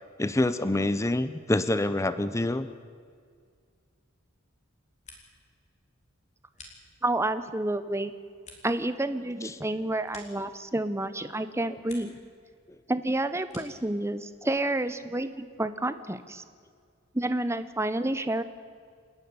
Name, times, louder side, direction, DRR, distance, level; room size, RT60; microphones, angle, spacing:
voice 1, 0.2-2.7 9.4-9.6, left 1 dB, 15° left, 13 dB, 0.6 m, -26 dB
sound 1, 4.7-5.6 5.9-7.3 7.7-11.0 11.4-12.3 12.6-13.9, left 3 dB, 35° left, 3.5 m, -53 dB
voice 2, 7.0-8.1 8.6-12.1 12.9-16.4 17.1-18.4, right 1 dB, 15° right, 12 dB, 0.9 m, -29 dB
28.0 x 10.0 x 9.6 m, 2.1 s
head